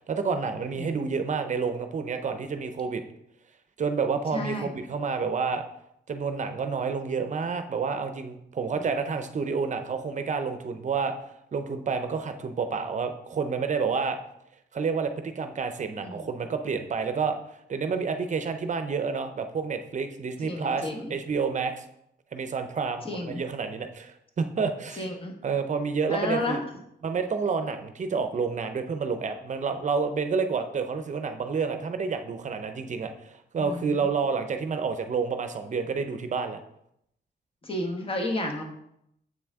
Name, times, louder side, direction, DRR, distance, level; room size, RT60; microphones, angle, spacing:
voice 1, 0.1-3.0 3.8-5.6 6.1-11.1 11.5-14.2 14.7-17.4 17.7-21.8 22.3-25.1 25.4-26.6 27.0-36.6, right 5 dB, 45° right, 8 dB, 0.6 m, -29 dB
voice 2, 4.3-4.7 8.7-8.9 16.0-16.3 20.4-21.2 23.0-23.4 25.0-25.3 26.1-26.6 33.6-34.0 37.6-38.6, left 1 dB, 30° left, 3 dB, 1.2 m, -32 dB
7.6 x 6.1 x 3.6 m, 0.77 s
wide cardioid pair, 145°, 18 cm